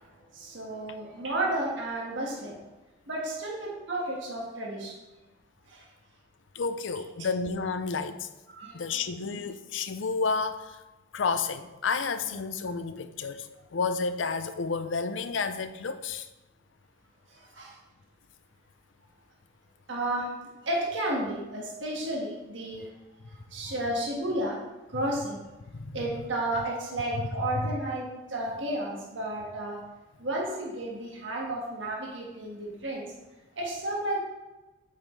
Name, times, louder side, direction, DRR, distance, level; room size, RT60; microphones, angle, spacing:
voice 1, 0.0-2.6 3.1-4.9 5.7-5.8 8.5-9.4 17.3-17.7 19.9-20.3 20.6-22.9 23.3-24.6 24.9-25.5 25.9-29.8 30.2-33.1 33.5-34.2, right 1 dB, 85° right, 1.7 m, -32 dB
voice 2, 6.5-8.3 8.7-10.8 11.1-16.3 25.7-26.0 27.2-27.3, left 4 dB, 85° left, 0.5 m, -31 dB
8.7 x 5.7 x 3.2 m
head